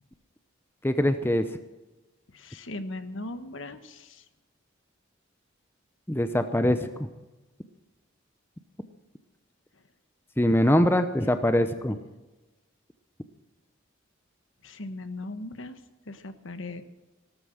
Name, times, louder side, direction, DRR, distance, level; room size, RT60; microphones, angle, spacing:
voice 1, 0.8-1.5 6.1-6.9 10.4-12.0, left 1 dB, 10° left, 9 dB, 0.7 m, -23 dB
voice 2, 2.3-4.2 11.2-11.3 14.6-15.8 16.1-16.8, left 2 dB, 70° left, 10 dB, 1.3 m, -38 dB
17.5 x 13.0 x 6.4 m, 1.1 s
head